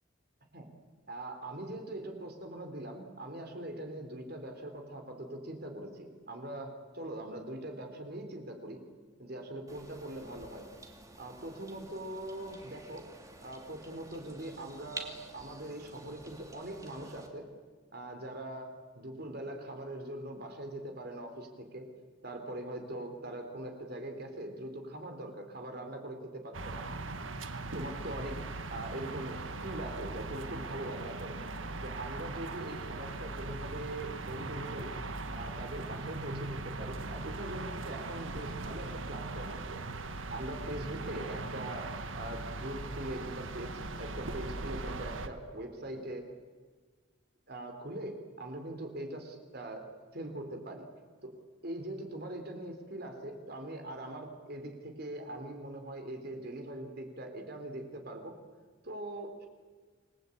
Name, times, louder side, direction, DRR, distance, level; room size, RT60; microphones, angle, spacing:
voice 1, 1.1-8.8 9.2-10.7 11.2-13.1 13.4-17.5 17.9-21.9 22.2-26.9 27.7-28.4 28.7-31.4 31.8-35.0 35.3-39.8 40.3-46.3 47.5-50.9 51.2-51.3 51.6-58.3 58.8-59.5, right 1 dB, 50° right, 4 dB, 3.9 m, -42 dB
sound 1, 9.7-17.3, right 2 dB, 15° right, 2.6 m, -50 dB
sound 2, 26.5-45.3, right 2 dB, 80° right, 1.6 m, -40 dB
28.0 x 20.5 x 8.7 m, 1.5 s
head